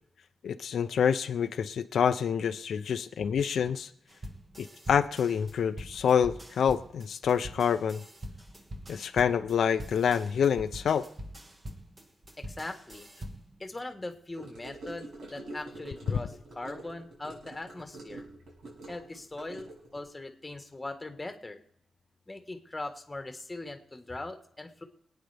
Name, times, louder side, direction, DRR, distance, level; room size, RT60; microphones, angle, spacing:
voice 1, 0.4-3.9 4.6-8.0 8.9-11.1, left 7 dB, 75° left, 9 dB, 0.5 m, -27 dB
sound 1, 4.1-13.6, equal, 20° right, 1.3 m, -44 dB
voice 2, 12.4-13.1 13.6-18.2 18.9-21.6 22.3-24.8, left 2 dB, 15° left, 6 dB, 1.4 m, -40 dB
Gurgling / Car passing by / Sink (filling or washing), 14.4-20.0, right 2 dB, 85° right, 5.7 m, -46 dB
25.5 x 9.2 x 3.4 m, 0.71 s
wide cardioid pair, 135°, 0 cm